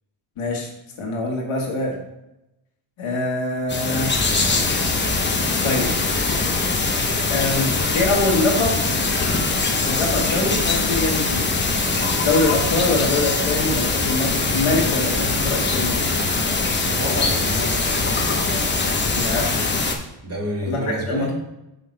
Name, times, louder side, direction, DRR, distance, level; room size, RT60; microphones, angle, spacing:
voice 1, 0.4-0.7 1.0-2.0 3.0-4.2 5.6-5.9 7.3-8.8 9.8-11.5 12.2-16.0 19.1-19.7 20.7-21.3, left 2 dB, 75° left, -1 dB, 1.7 m, -24 dB
sound 1, 3.7-19.9, left 3 dB, 20° left, 0.8 m, -22 dB
voice 2, 16.9-17.8 20.2-21.3, right 1 dB, 30° right, -2 dB, 1.9 m, -28 dB
5.7 x 5.5 x 3.3 m, 0.90 s
cardioid pair, 95°, 50 cm